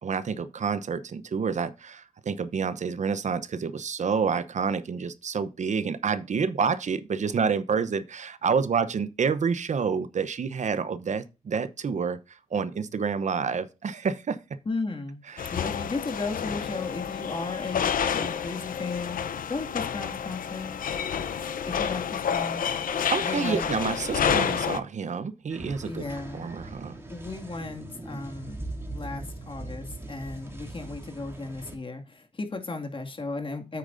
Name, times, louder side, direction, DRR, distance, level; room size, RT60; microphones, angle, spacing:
voice 1, 0.0-14.4 15.3-15.6 23.1-26.0 26.3-26.9, right 6 dB, 55° right, 0.8 m, -28 dB
voice 2, 14.7-15.2 15.5-17.9 18.1-19.2 19.5-20.8 21.7-22.7 23.2-23.7 25.8-26.5 26.9-28.6 28.9-33.8, left 3 dB, 40° left, 2.2 m, -35 dB
sound 1, 15.4-24.8, left 8 dB, 75° left, 0.8 m, -29 dB
sound 2, 25.5-31.8, right 2 dB, 15° right, 2.7 m, -40 dB
9.2 x 8.4 x 2.6 m
cardioid pair, 80°, 14 cm